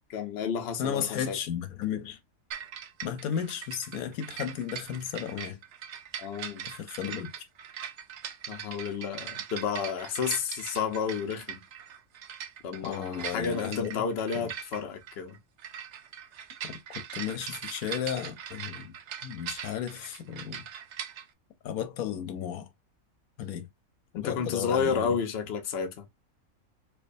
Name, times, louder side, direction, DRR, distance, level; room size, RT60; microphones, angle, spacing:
voice 1, 0.1-1.4 6.2-6.7 8.5-11.6 12.6-15.4 24.1-26.1, left 6 dB, 55° left, 0.9 m, -31 dB
voice 2, 0.8-2.2 3.0-5.6 6.6-7.3 12.8-14.0 16.6-16.7 17.1-18.9 19.2-20.6 21.6-22.7 23.4-23.7 24.1-25.1, left 9 dB, 85° left, 1.2 m, -34 dB
sound 1, 2.5-21.3, right 9 dB, 65° right, 0.8 m, -41 dB
4.7 x 2.3 x 2.5 m
omnidirectional pair, 1.5 m